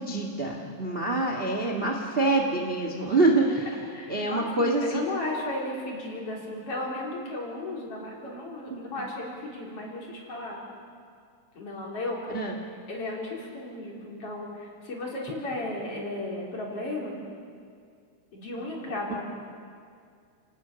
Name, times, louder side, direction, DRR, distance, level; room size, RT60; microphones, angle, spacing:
voice 1, 0.0-3.7 4.1-5.0 8.7-8.8 12.3-12.5, right 2 dB, 25° right, 2 dB, 1.3 m, -25 dB
voice 2, 3.9-10.6 11.5-12.3 12.9-17.3 18.3-19.2, left 2 dB, 50° left, -2 dB, 4.9 m, -35 dB
29.5 x 18.5 x 7.0 m, 2.3 s
omnidirectional pair, 3.5 m